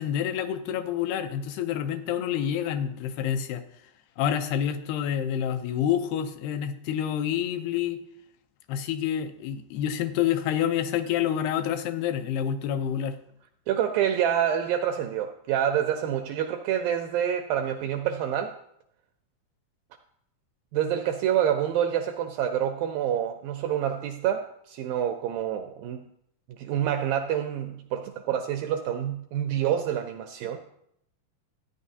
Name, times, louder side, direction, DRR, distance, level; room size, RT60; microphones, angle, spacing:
voice 1, 0.0-3.6 4.2-8.0 8.7-13.2, left 9 dB, 80° left, 8 dB, 2.7 m, -28 dB
voice 2, 13.7-18.6 20.7-26.0 26.5-30.6, right 9 dB, 85° right, 6 dB, 2.0 m, -27 dB
13.5 x 9.2 x 2.7 m, 0.74 s
omnidirectional pair, 4.6 m